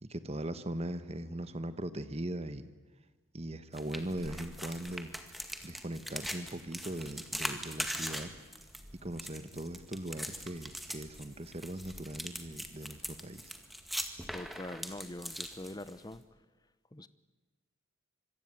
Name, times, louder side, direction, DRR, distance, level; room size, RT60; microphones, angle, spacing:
voice 1, 0.0-2.7 3.3-5.1 5.6-8.3 9.0-13.5, right 1 dB, 30° right, 1.3 m, -40 dB
sound 1, 3.7-16.2, equal, ahead, 2.0 m, -41 dB
voice 2, 14.3-16.2 16.9-17.1, left 1 dB, 20° left, 0.9 m, -43 dB
26.0 x 24.0 x 9.4 m
head